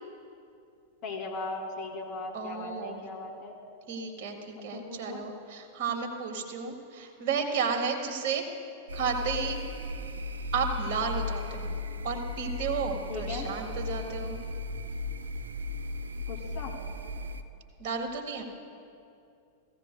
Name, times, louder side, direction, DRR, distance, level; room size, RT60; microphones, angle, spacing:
voice 1, 1.0-3.5 4.7-5.2 13.1-13.5 16.3-16.7, left 3 dB, 40° left, -1 dB, 2.5 m, -38 dB
voice 2, 2.3-3.0 3.9-8.4 8.9-9.6 10.5-11.7 12.0-14.4 17.8-18.4, right 5 dB, 50° right, 2 dB, 1.6 m, -32 dB
sound 1, 8.9-17.4, left 2 dB, 75° right, 0.5 m, -36 dB
17.0 x 15.5 x 2.2 m, 2.6 s
figure-of-eight pair, 95°, 0 cm